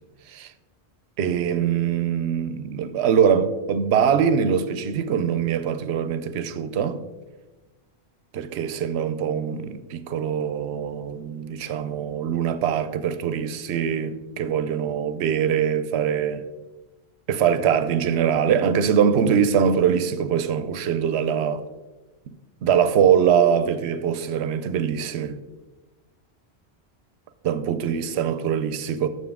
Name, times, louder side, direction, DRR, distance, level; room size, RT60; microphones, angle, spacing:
voice 1, 1.2-7.0 8.3-16.5 17.3-21.6 22.3-22.4 22.6-25.4 27.4-29.1, right 8 dB, 80° right, 0.8 m, -23 dB
7.0 x 6.5 x 3.5 m
omnidirectional pair, 1.1 m